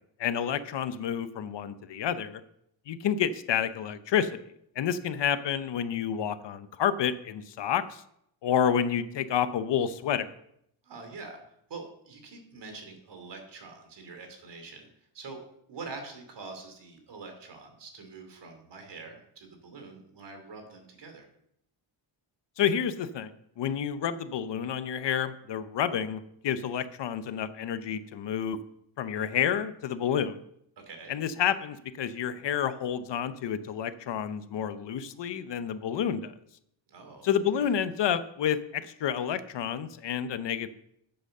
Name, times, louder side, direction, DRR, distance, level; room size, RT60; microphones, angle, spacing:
voice 1, 0.2-2.4 2.9-4.3 4.8-8.0 8.4-10.3 22.6-23.3 23.6-28.6 29.0-30.4 31.1-36.3 37.2-40.7, left 8 dB, 60° left, 12 dB, 0.8 m, -29 dB
voice 2, 10.8-11.4 11.7-14.9 15.1-21.3 30.9-31.1 36.9-37.8, right 3 dB, 60° right, 5 dB, 2.9 m, -45 dB
10.0 x 8.0 x 6.6 m, 0.74 s
wide cardioid pair, 165°, 48 cm